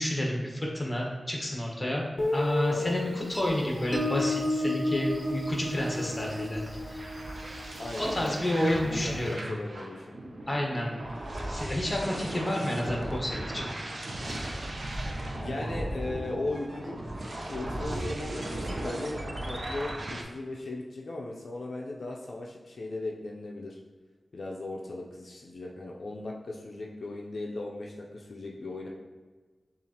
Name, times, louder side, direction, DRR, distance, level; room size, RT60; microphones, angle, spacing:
voice 1, 0.0-2.0 2.3-6.6 6.9-7.1 8.1-9.5 10.5-11.1 11.4-13.7, left 1 dB, 25° left, -2 dB, 1.1 m, -30 dB
Guitar, 2.2-8.8, left 2 dB, 40° left, 0.7 m, -32 dB
voice 2, 2.7-3.0 7.8-10.1 15.3-17.0 17.4-23.8 24.3-28.9, left 2 dB, 75° left, -1 dB, 0.4 m, -37 dB
sound 1, 3.2-8.4, equal, 15° right, 0.6 m, -47 dB
sound 2, 5.0-20.2, right 1 dB, 60° right, 0.5 m, -37 dB
6.9 x 2.4 x 2.8 m, 1.4 s
wide cardioid pair, 70°, 0 cm